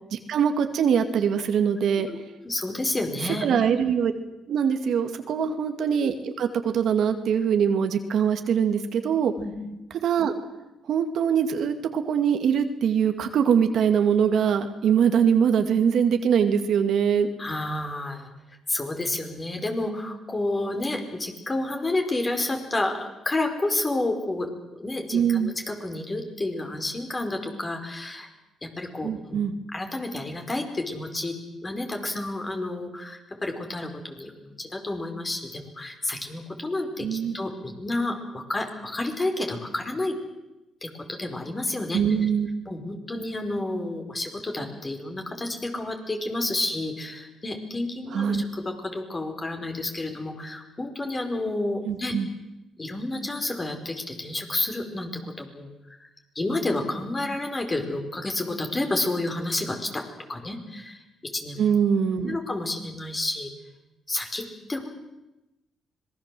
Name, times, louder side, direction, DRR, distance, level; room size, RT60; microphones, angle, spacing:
voice 1, 0.1-2.1 3.4-4.1 4.5-9.3 10.0-10.3 10.9-17.3 25.1-25.6 29.0-29.5 37.0-37.4 41.9-42.5 48.1-48.4 51.8-52.3 61.6-62.4, right 7 dB, 70° right, 7 dB, 2.2 m, -23 dB
voice 2, 2.4-3.5 5.4-5.5 9.4-9.5 17.4-18.3 18.7-28.3 28.6-29.4 29.7-31.4 31.6-40.2 40.8-42.0 42.6-52.2 52.8-55.7 56.3-60.0 60.3-61.0 61.3-61.6 62.3-63.5 64.1-64.9, left 2 dB, 25° left, 4 dB, 5.0 m, -30 dB
26.0 x 21.0 x 7.8 m, 0.96 s
cardioid pair, 90°, 0 cm